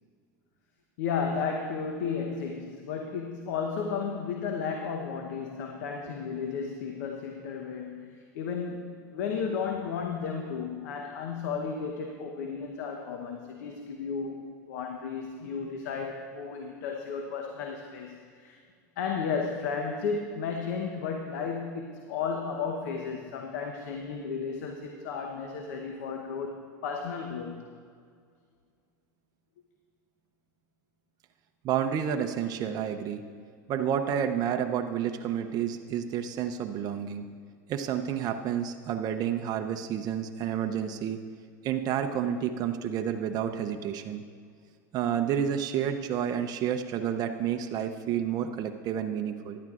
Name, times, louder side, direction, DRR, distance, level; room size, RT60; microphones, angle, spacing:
voice 1, 1.0-18.6 19.0-27.6, left 5 dB, 75° left, 3 dB, 0.9 m, -33 dB
voice 2, 31.6-33.3 33.7-37.3 37.7-41.2 41.6-44.2 44.9-49.6, right 9 dB, 40° right, 6 dB, 0.6 m, -30 dB
15.5 x 11.0 x 2.5 m, 2.1 s
supercardioid pair, 110°, 10 cm